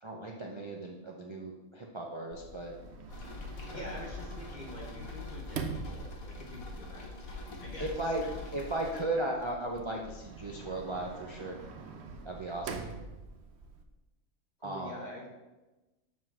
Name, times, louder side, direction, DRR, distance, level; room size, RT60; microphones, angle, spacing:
voice 1, 0.0-2.7 3.7-4.0 7.8-8.2 8.5-11.6 12.2-12.8 14.6-14.9, right 2 dB, 30° right, -1 dB, 0.5 m, -36 dB
Sliding door, 2.3-13.8, right 5 dB, 60° right, 0.9 m, -45 dB
sound 1, 3.1-9.0, left 3 dB, 80° left, 1.7 m, -43 dB
voice 2, 3.7-8.3 14.6-15.3, left 1 dB, 35° left, -2 dB, 1.5 m, -46 dB
7.5 x 3.8 x 5.9 m, 1.1 s
omnidirectional pair, 1.5 m